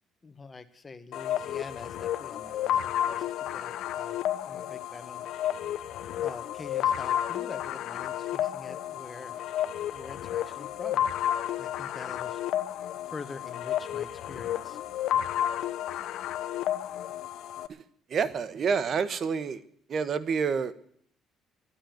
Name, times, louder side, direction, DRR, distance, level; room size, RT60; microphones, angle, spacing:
voice 1, 0.2-4.2 4.4-5.2 6.2-9.4 9.9-12.4 13.0-14.8, left 4 dB, 25° left, 11 dB, 1.6 m, -45 dB
sound 1, 1.1-17.7, left 11 dB, 70° left, 0.9 m, -31 dB
voice 2, 18.1-19.6 19.9-20.7, right 6 dB, 50° right, 15 dB, 1.2 m, -28 dB
12.5 x 10.0 x 9.2 m, 0.65 s
cardioid pair, 90°, 0 cm